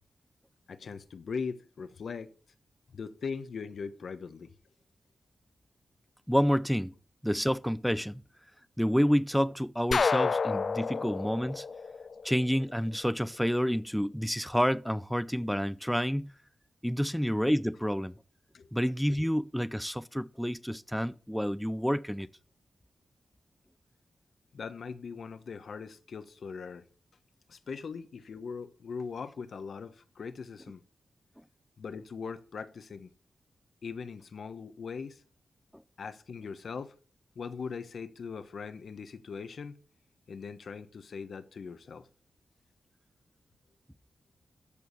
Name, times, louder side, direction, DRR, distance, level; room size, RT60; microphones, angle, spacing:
voice 1, 0.7-2.3 2.9-4.5 18.5-18.7 24.5-26.9 27.5-30.8 31.8-33.1 33.8-35.2 36.0-36.9 37.3-39.8 40.3-42.1, left 5 dB, 70° left, 1.2 m, -40 dB
voice 2, 6.3-6.9 7.2-8.2 8.8-11.7 12.2-16.3 16.8-18.1 18.7-22.3 35.7-35.8, equal, ahead, 0.4 m, -29 dB
sound 1, 9.9-12.7, left 5 dB, 50° left, 0.5 m, -30 dB
14.0 x 4.7 x 6.9 m
wide cardioid pair, 105°, 0 cm